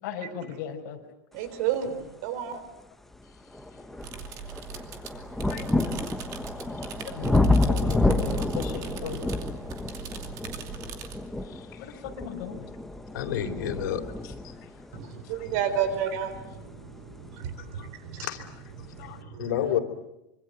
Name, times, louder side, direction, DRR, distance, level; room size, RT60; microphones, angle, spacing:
voice 1, 0.0-1.0 4.8-4.9 5.5-5.7 6.9-9.2 11.8-12.7 14.2-14.3 15.0-15.5 17.8-17.9 19.0-19.2, left 8 dB, 50° left, 2 dB, 5.4 m, -38 dB
voice 2, 1.3-2.6 14.9-18.3 18.8-19.5, right 8 dB, 55° right, 11 dB, 3.8 m, -32 dB
sound 1, 2.5-2.6 3.1-17.8 18.7-18.8, left 2 dB, 5° left, 1.0 m, -29 dB
sound 2, 4.0-11.2, right 7 dB, 35° right, 2.6 m, -40 dB
voice 3, 11.4-11.9 13.1-14.0 14.4-14.6 18.2-18.4 19.4-19.8, left 10 dB, 80° left, 4 dB, 3.9 m, -30 dB
25.5 x 25.0 x 8.1 m, 0.91 s
supercardioid pair, 170°, 10 cm